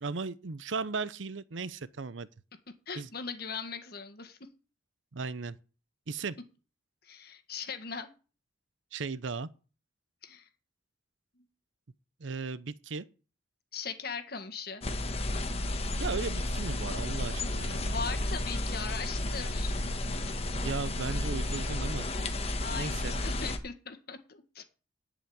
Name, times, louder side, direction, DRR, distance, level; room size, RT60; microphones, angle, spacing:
voice 1, 0.0-2.3 3.0-3.1 5.1-5.6 6.1-6.4 8.9-9.5 12.2-13.1 16.0-17.9 20.5-22.1 22.7-23.1, right 4 dB, 85° right, 0.7 m, -36 dB
voice 2, 2.9-4.4 7.0-8.1 10.2-10.5 11.4-11.5 13.7-14.8 17.5-19.8 22.6-24.6, left 5 dB, 55° left, 1.6 m, -40 dB
sound 1, 14.8-23.6, left 1 dB, 30° left, 1.2 m, -32 dB
11.5 x 5.1 x 8.6 m
head